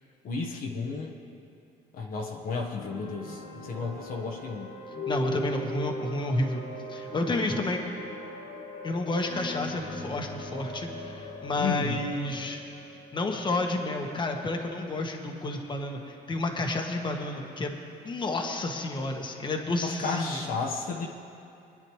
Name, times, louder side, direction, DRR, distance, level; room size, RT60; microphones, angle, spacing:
voice 1, 0.2-1.1 1.9-4.7 11.6-12.0 19.8-21.1, left 4 dB, 55° left, 0 dB, 1.2 m, -33 dB
sound 1, 2.7-14.4, left 1 dB, 85° left, 2.8 m, -39 dB
voice 2, 5.1-6.6 6.9-7.8 8.8-12.6 13.1-17.8 18.0-20.4, left 2 dB, 25° left, 2 dB, 1.4 m, -30 dB
22.5 x 10.0 x 3.2 m, 2.6 s
cardioid pair, 110°, 17 cm